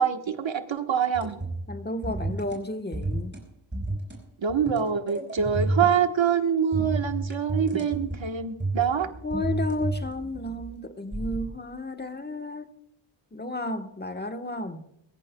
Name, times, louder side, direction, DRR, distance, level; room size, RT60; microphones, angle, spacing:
voice 1, 0.0-1.4 4.4-9.1, right 7 dB, 70° right, 6 dB, 1.3 m, -25 dB
sound 1, 1.1-1.7 2.0-2.6 2.9-3.4 3.7-4.2 4.5-6.0 6.7-8.3 8.6-10.7 11.1-11.4, right 2 dB, 20° right, 4.6 m, -31 dB
voice 2, 1.7-3.3 9.2-12.7 13.3-14.8, left 2 dB, 20° left, 6 dB, 1.2 m, -32 dB
23.5 x 14.5 x 2.3 m, 0.80 s
wide cardioid pair, 105°, 48 cm